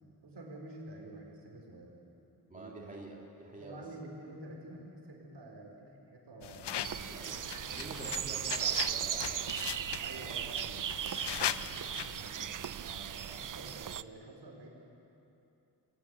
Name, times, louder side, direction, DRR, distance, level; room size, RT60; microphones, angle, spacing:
voice 1, 0.2-2.0 2.5-2.7 3.6-7.0 10.0-14.7, right 2 dB, 80° right, 0 dB, 4.6 m, -49 dB
voice 2, 2.5-3.8 7.1-7.5 7.8-9.8, right 2 dB, 20° right, -2 dB, 2.6 m, -47 dB
sound 1, 6.4-12.3, left 10 dB, 80° left, 0.7 m, -40 dB
sound 2, 6.8-14.0, right 9 dB, 50° right, 0.5 m, -37 dB
21.5 x 17.5 x 9.5 m, 2.8 s
wide cardioid pair, 155°, 41 cm